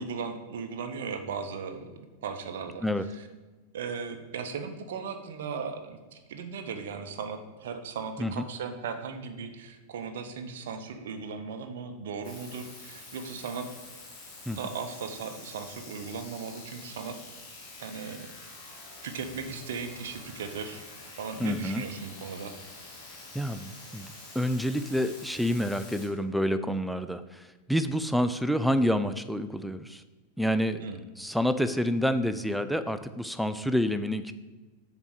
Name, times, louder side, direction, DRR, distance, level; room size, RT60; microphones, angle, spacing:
voice 1, 0.0-2.8 3.1-3.3 3.7-13.7 14.6-17.2 17.8-18.3 19.0-20.8 21.2-22.5 30.8-31.0, right 5 dB, 60° right, 6 dB, 0.7 m, -37 dB
sound 1, 12.2-26.1, left 2 dB, 35° left, 2.0 m, -47 dB
voice 2, 21.4-21.8 23.3-24.1 24.3-30.0 30.4-30.9 31.2-34.3, equal, ahead, 11 dB, 0.3 m, -28 dB
7.0 x 4.1 x 6.2 m, 1.3 s
figure-of-eight pair, 90°, 0 cm